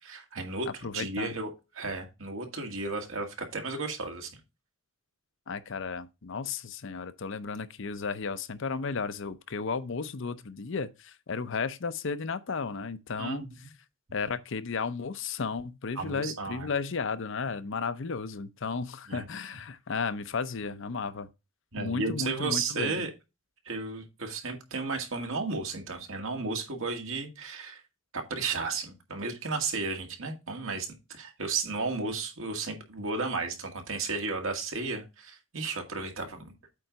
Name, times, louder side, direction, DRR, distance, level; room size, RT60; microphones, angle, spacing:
voice 1, 0.0-0.7 0.9-4.3 13.2-13.7 16.0-16.7 19.1-19.3 21.7-23.1 23.7-27.8 28.1-36.5, right 3 dB, 80° right, 1.9 m, -34 dB
voice 2, 0.7-1.3 5.5-13.5 14.1-21.3 21.8-23.0, left 5 dB, 65° left, 0.7 m, -34 dB
8.4 x 3.9 x 4.6 m
head